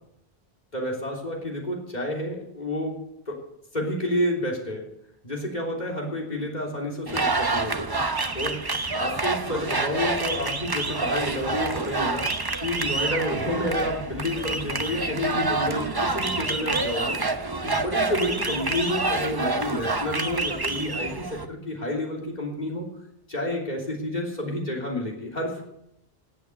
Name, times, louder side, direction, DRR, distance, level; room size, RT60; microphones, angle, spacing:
voice 1, 0.7-3.0 3.3-3.4 3.7-4.9 5.2-7.9 8.3-8.6 9.0-12.3 12.6-17.2 17.6-22.9 23.3-25.6, left 1 dB, 45° left, -1 dB, 3.7 m, -29 dB
sound 1, 7.1-21.5, right 3 dB, 25° right, 0.8 m, -27 dB
16.5 x 8.5 x 6.8 m, 0.78 s
omnidirectional pair, 1.0 m